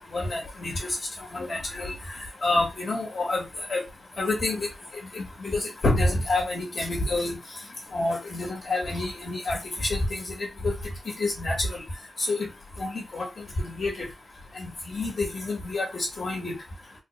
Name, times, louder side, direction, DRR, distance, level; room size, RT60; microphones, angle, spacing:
voice 1, 0.1-0.9 1.3-1.9 2.4-3.4 3.7-3.8 4.2-4.7 5.1-7.4 7.9-10.3 10.6-10.7 11.2-11.8 12.3-12.5 12.8-13.3 13.6-14.0 14.5-16.5, left 2 dB, 45° left, -1 dB, 1.7 m, -28 dB
4.0 x 2.5 x 3.3 m, 0.23 s
wide cardioid pair, 160°, 0 cm